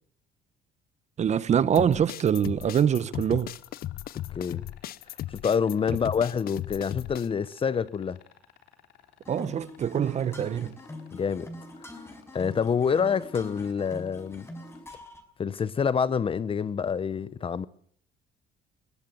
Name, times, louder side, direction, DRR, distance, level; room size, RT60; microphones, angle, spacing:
voice 1, 1.2-3.5 9.3-10.8, right 8 dB, 45° right, 0.9 m, -24 dB
sound 1, 1.8-7.3, left 13 dB, 60° left, 0.8 m, -36 dB
sound 2, 2.8-14.9 16.6-16.7, left 11 dB, 85° left, 3.6 m, -57 dB
voice 2, 4.3-4.6 5.3-8.2 11.1-11.5 12.3-14.5 15.4-17.7, left 6 dB, 30° left, 0.8 m, -27 dB
sound 3, 9.2-15.2, left 1 dB, 15° left, 5.6 m, -43 dB
22.0 x 18.5 x 7.8 m
cardioid pair, 110°, 17 cm